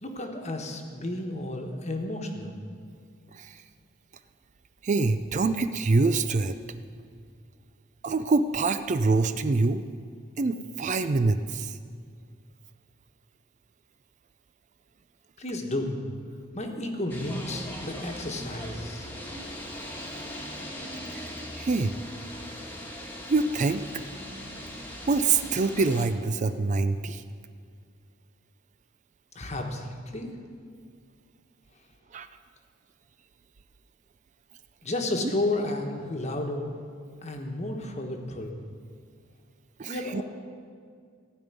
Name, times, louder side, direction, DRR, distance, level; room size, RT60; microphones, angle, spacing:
voice 1, 0.0-2.6 15.4-16.0 16.5-19.1 29.3-30.4 34.8-36.7 37.2-38.6 39.9-40.2, left 1 dB, 35° left, 3 dB, 1.3 m, -32 dB
voice 2, 4.8-6.6 8.0-9.8 10.4-11.8 21.1-21.2 21.5-22.0 23.3-23.8 25.1-27.2 32.1-32.3 39.8-40.2, right 3 dB, 40° right, 10 dB, 0.4 m, -25 dB
sound 1, 17.1-26.1, equal, 10° left, 1.4 m, -40 dB
15.5 x 5.3 x 9.3 m, 2.2 s
head